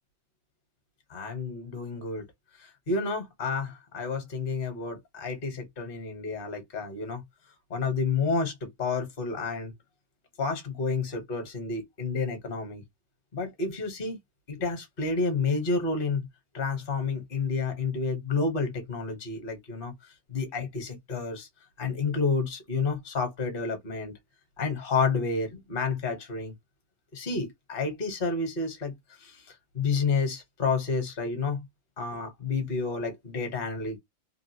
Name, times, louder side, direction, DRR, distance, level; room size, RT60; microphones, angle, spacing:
voice 1, 1.1-2.2 2.6-7.2 7.7-9.7 10.4-12.8 13.3-14.2 14.5-16.3 16.5-19.9 20.3-21.5 21.8-24.1 24.6-26.5 27.1-28.9 29.2-29.4 29.7-31.6 32.0-34.0, left 4 dB, 40° left, 1.2 m, -30 dB
3.2 x 2.4 x 2.7 m
omnidirectional pair, 1.7 m